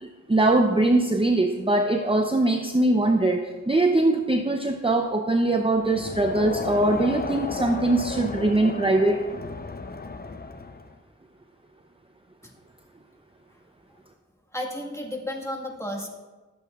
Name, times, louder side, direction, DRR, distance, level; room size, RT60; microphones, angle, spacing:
voice 1, 0.0-9.2, right 2 dB, 20° right, 4 dB, 0.6 m, -22 dB
Crowd, 5.8-11.0, left 3 dB, 30° left, 0.6 m, -34 dB
voice 2, 14.5-16.1, left 1 dB, 10° left, 0 dB, 1.6 m, -33 dB
14.5 x 7.6 x 2.4 m, 1.3 s
cardioid pair, 40°, 31 cm